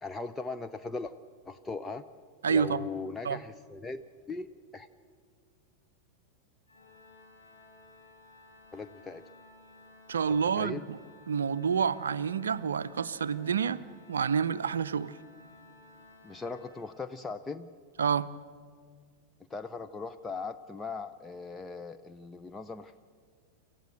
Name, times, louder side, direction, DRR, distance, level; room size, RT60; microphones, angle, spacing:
voice 1, 0.0-1.1 1.5-2.0 2.5-4.0 4.3-4.5 4.7-4.9 8.7-9.2 10.3-10.9 16.2-17.7 19.5-22.9, left 3 dB, 10° left, 0.6 m, -39 dB
voice 2, 2.4-2.9 3.2-3.4 10.1-11.0 11.3-13.8 14.1-15.2 18.0-18.3, right 6 dB, 70° right, 0.6 m, -28 dB
Organ, 6.7-17.4, left 2 dB, 75° left, 6.1 m, -56 dB
27.5 x 15.0 x 7.8 m
figure-of-eight pair, 90°, 0 cm